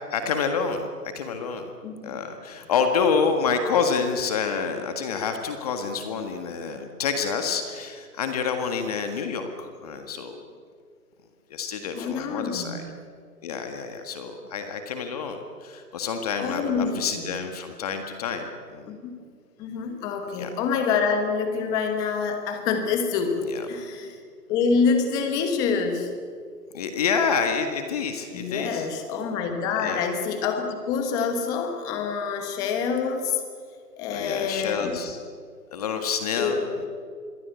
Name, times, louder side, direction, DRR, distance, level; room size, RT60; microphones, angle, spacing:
voice 1, 0.1-0.9 1.1-1.6 2.0-10.4 11.5-12.8 13.4-18.9 20.4-20.5 23.5-23.6 26.7-28.9 29.8-30.0 34.1-35.2 35.7-36.9, left 5 dB, 25° left, 6 dB, 1.7 m, -28 dB
voice 2, 1.8-2.2 11.9-12.8 16.4-17.0 18.9-19.1 19.6-23.4 23.7-24.2 24.5-26.1 28.3-33.4 34.0-35.0 36.4-36.6, left 5 dB, 10° left, 6 dB, 1.1 m, -26 dB
26.5 x 22.5 x 8.2 m, 2.1 s
hypercardioid pair, 155°, 49 cm